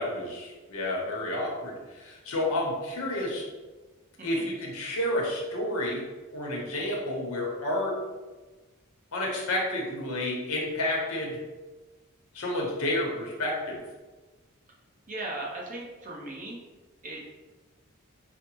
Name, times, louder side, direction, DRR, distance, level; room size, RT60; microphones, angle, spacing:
voice 1, 0.0-3.5 4.2-6.1 6.3-8.0 9.1-11.4 12.3-13.8, left 1 dB, 75° left, -2 dB, 0.9 m, -30 dB
voice 2, 15.1-16.6 17.0-17.3, right 2 dB, 40° right, -3 dB, 0.8 m, -37 dB
5.0 x 2.1 x 3.0 m, 1.2 s
head